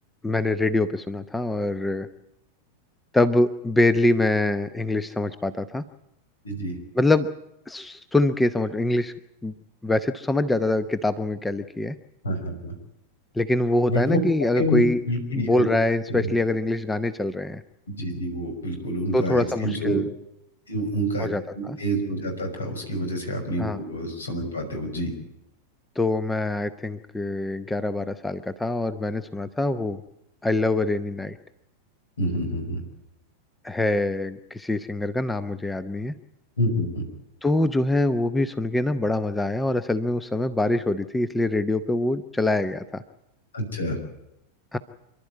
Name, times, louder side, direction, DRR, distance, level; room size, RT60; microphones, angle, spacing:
voice 1, 0.2-2.1 3.1-5.8 6.9-7.3 7.7-9.1 9.4-9.5 9.8-12.0 13.3-15.0 15.4-17.6 19.1-20.0 21.2-21.8 23.6-23.8 26.0-30.0 30.4-31.4 33.6-36.1 37.4-43.0 44.7-44.8, left 2 dB, 10° left, 13 dB, 0.8 m, -24 dB
voice 2, 12.2-12.7 13.9-14.2 14.6-14.8 15.1-15.7 17.9-20.0 20.7-21.3 21.5-25.1 32.2-32.8 36.6-37.0 43.5-44.0, equal, 75° left, 5 dB, 5.9 m, -27 dB
27.0 x 12.0 x 9.5 m, 0.85 s
figure-of-eight pair, 90°, 0 cm